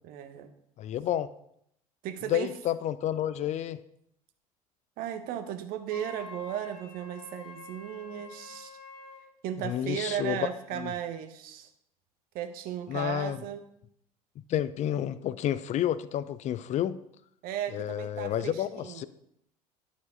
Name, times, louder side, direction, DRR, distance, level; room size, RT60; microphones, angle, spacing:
voice 1, 0.0-0.5 2.0-2.5 5.0-8.7 9.4-11.7 12.3-13.6 17.4-19.1, right 10 dB, 50° right, 8 dB, 1.1 m, -36 dB
voice 2, 0.8-1.3 2.3-3.8 9.6-10.4 10.7-10.9 12.9-13.4 14.5-17.0 17.7-19.1, left 11 dB, 40° left, 16 dB, 0.5 m, -30 dB
Wind instrument woodwind instrument, 5.9-9.3, left 4 dB, 65° left, 2.7 m, -47 dB
11.5 x 5.1 x 5.2 m, 0.76 s
figure-of-eight pair, 65°, 19 cm